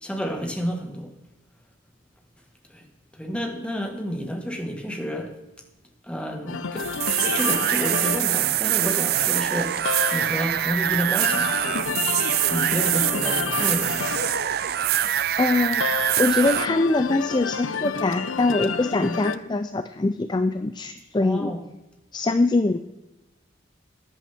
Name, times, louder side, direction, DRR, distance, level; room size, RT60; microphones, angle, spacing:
voice 1, 0.0-1.1 2.7-2.8 3.1-5.4 6.1-6.9 7.2-12.0 12.5-14.2 19.0-19.2 21.2-21.6, equal, 5° left, 3 dB, 1.6 m, -30 dB
sound 1, 6.5-19.4, left 6 dB, 90° left, 0.7 m, -31 dB
sound 2, 6.8-16.7, right 12 dB, 50° right, 0.4 m, -24 dB
voice 2, 15.4-15.9 16.2-21.5 22.1-22.8, left 2 dB, 20° left, 10 dB, 0.4 m, -23 dB
14.0 x 10.5 x 3.5 m, 0.99 s
head